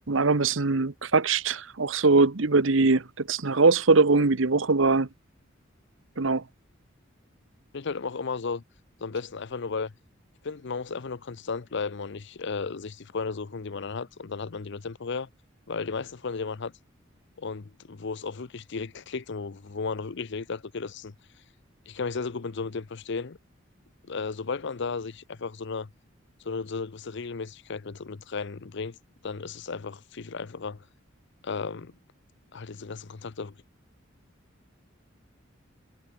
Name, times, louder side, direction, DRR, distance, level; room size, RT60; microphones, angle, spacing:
voice 1, 0.1-5.1 6.2-6.4, right 3 dB, 70° right, 1.1 m, -22 dB
voice 2, 7.7-8.6 9.0-9.9 10.4-15.3 15.7-16.7 17.4-21.1 21.9-23.4 24.1-25.9 26.4-29.0 29.2-30.8 31.4-31.9 32.5-33.5, left 4 dB, 65° left, 0.7 m, -34 dB
head